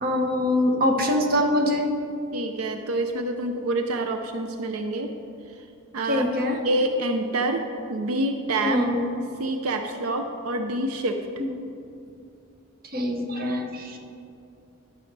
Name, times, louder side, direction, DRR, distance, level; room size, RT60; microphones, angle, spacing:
voice 1, 0.0-1.9 6.1-6.6 8.6-9.0 11.4-11.5 12.9-14.0, left 1 dB, 45° right, 3 dB, 0.9 m, -23 dB
voice 2, 2.3-5.1 5.6-5.7 5.9-6.3 6.6-7.6 7.9-8.8 9.4-11.2, right 2 dB, 85° right, 6 dB, 0.5 m, -27 dB
11.5 x 6.2 x 4.7 m, 2.6 s
head